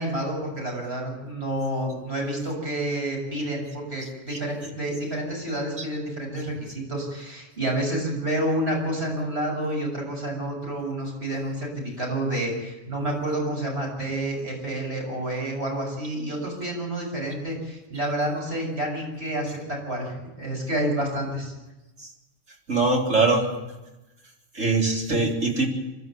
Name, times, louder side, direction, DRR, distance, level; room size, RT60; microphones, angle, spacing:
voice 1, 0.0-21.5, right 1 dB, 60° right, 0 dB, 7.5 m, -29 dB
voice 2, 22.7-23.4 24.6-25.7, right 3 dB, 85° right, -1 dB, 4.1 m, -22 dB
28.5 x 12.5 x 8.6 m, 1.0 s
omnidirectional pair, 1.3 m